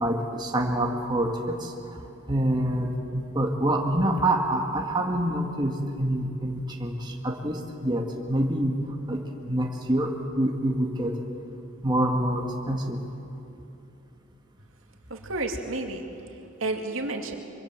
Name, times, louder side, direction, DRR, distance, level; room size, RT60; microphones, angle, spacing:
voice 1, 0.0-1.7 2.3-8.8 9.1-9.2 9.5-11.2 11.8-13.0, right 1 dB, 20° right, 0 dB, 2.0 m, -26 dB
voice 2, 15.1-17.3, right 2 dB, 75° right, 3 dB, 2.4 m, -32 dB
25.0 x 23.5 x 7.6 m, 2.8 s
head